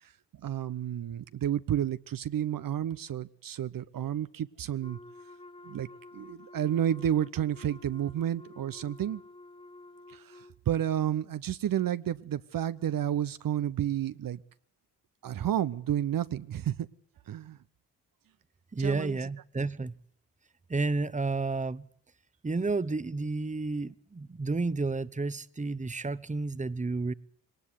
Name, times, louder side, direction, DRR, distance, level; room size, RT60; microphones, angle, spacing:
voice 1, 0.4-5.0 5.6-5.9 6.1-9.2 10.1-14.4 15.2-16.8 17.3-17.6 18.8-19.2, right 10 dB, 60° right, 14 dB, 0.9 m, -31 dB
Wind instrument woodwind instrument, 4.8-10.6, left 2 dB, 15° left, 1.4 m, -51 dB
voice 2, 18.7-19.9 20.7-21.9 22.4-27.1, right 3 dB, 20° right, 16 dB, 1.1 m, -31 dB
21.0 x 19.0 x 8.2 m, 0.62 s
supercardioid pair, 50°, 39 cm